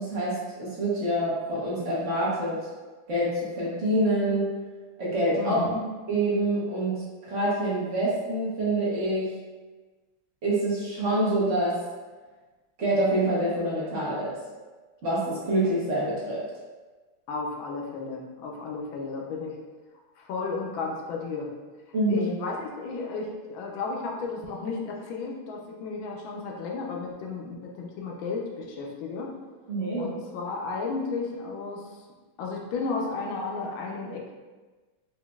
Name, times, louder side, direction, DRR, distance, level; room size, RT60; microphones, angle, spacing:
voice 1, 0.0-2.6 3.1-4.5 5.0-5.6 6.1-9.3 10.4-11.8 12.8-14.4 15.0-16.4 21.9-22.3 29.7-30.1, right 1 dB, 50° right, -7 dB, 0.9 m, -26 dB
voice 2, 5.4-5.8 17.3-19.6 20.2-21.5 22.1-29.3 30.0-32.0 32.4-34.3, left 4 dB, 75° left, -1 dB, 1.3 m, -33 dB
5.0 x 2.7 x 2.3 m, 1.3 s
omnidirectional pair, 2.3 m